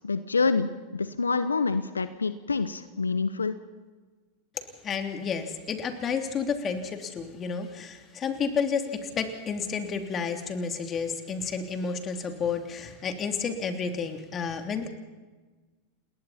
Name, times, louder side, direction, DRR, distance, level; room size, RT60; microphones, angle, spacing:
voice 1, 0.0-3.5, left 4 dB, 85° left, 12 dB, 0.9 m, -27 dB
voice 2, 4.8-14.9, left 5 dB, 30° left, 5 dB, 3.2 m, -31 dB
28.5 x 21.0 x 4.3 m, 1.3 s
figure-of-eight pair, 90°, 0 cm